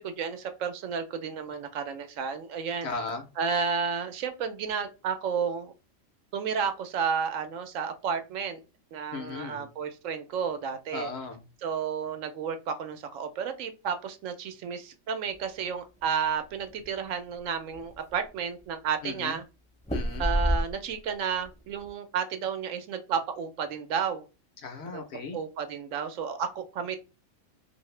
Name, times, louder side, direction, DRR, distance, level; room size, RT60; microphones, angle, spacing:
voice 1, 0.0-2.9 3.4-5.7 6.3-8.6 8.9-11.1 11.6-19.4 20.2-24.2 24.9-25.0 25.3-27.0, right 6 dB, 75° right, 8 dB, 0.9 m, -32 dB
voice 2, 2.8-3.3 9.1-9.7 10.9-11.5 19.0-19.4 19.9-20.3 24.6-25.4, left 4 dB, 60° left, 5 dB, 0.9 m, -36 dB
sound 1, 16.0-16.9 17.3-17.4 17.7-18.4 19.8-21.1 21.4-21.9, right 1 dB, 5° left, 0.6 m, -29 dB
2.7 x 2.6 x 3.1 m, 0.30 s
omnidirectional pair, 1.4 m